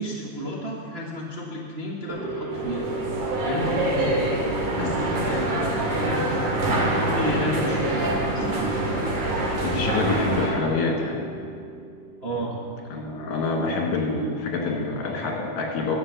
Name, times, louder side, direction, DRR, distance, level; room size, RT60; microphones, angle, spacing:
voice 1, 0.0-2.9 3.4-4.2 4.7-6.6 6.9-8.8 12.2-12.5, equal, 40° right, -6 dB, 0.9 m, -31 dB
sound 1, 2.1-13.0, right 2 dB, 60° right, 2.8 m, -35 dB
sound 2, 2.5-10.5, right 1 dB, 85° right, 3.5 m, -25 dB
voice 2, 9.6-11.3 12.9-16.0, left 3 dB, 70° left, 0 dB, 3.2 m, -26 dB
12.5 x 7.9 x 6.9 m, 2.2 s
omnidirectional pair, 3.4 m